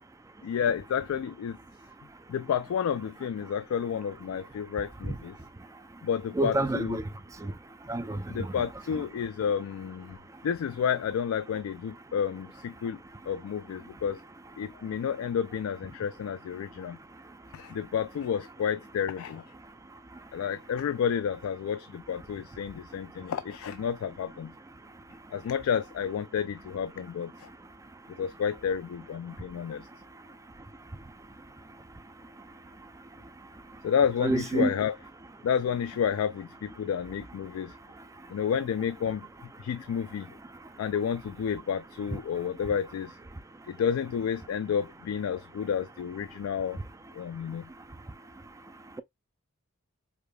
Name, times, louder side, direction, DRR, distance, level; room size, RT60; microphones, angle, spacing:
voice 1, 0.4-1.6 2.3-5.3 6.0-7.0 8.3-10.2 10.4-13.0 13.3-14.2 14.6-17.0 17.5-19.4 20.3-24.5 25.3-27.5 28.2-29.9 33.8-35.0 35.4-37.7 38.3-39.3 39.6-40.3 40.8-43.2 43.7-46.8 47.1-47.7, left 7 dB, 75° left, 0.3 m, -30 dB
voice 2, 6.4-7.0 7.4-7.5 7.9-8.5 34.2-34.7, right 2 dB, 15° right, 0.3 m, -28 dB
4.9 x 2.2 x 2.2 m
head